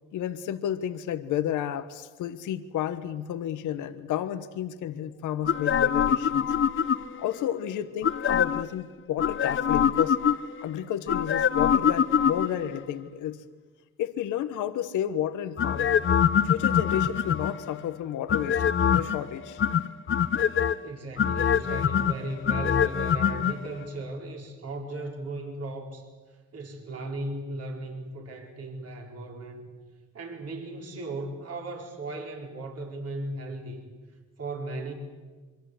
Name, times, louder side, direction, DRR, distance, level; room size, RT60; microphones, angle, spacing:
voice 1, 0.1-6.5 7.2-10.2 10.6-13.4 14.0-16.0 16.4-19.6, left 10 dB, 85° left, 11 dB, 1.3 m, -31 dB
sound 1, 5.5-7.3 8.0-8.7 9.2-10.6 11.1-12.8 15.6-17.7 18.3-19.2 19.6-20.8 21.2-23.5 23.8-23.9, left 8 dB, 40° left, 0.8 m, -24 dB
voice 2, 20.8-26.1 26.5-29.7 30.1-33.8 34.4-34.9, right 2 dB, 55° right, 1 dB, 4.8 m, -36 dB
26.0 x 23.5 x 8.0 m, 1.4 s
cardioid pair, 90°, 30 cm